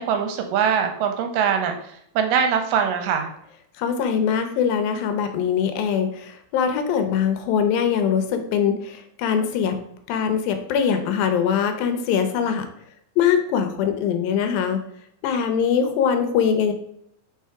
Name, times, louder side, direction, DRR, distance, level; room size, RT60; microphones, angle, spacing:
voice 1, 0.0-3.3, right 7 dB, 80° right, 5 dB, 2.2 m, -22 dB
voice 2, 3.8-9.7 10.1-12.6 13.2-14.8 15.2-16.7, left 7 dB, 80° left, 7 dB, 2.4 m, -22 dB
4.6 x 4.5 x 4.6 m, 0.72 s
omnidirectional pair, 4.1 m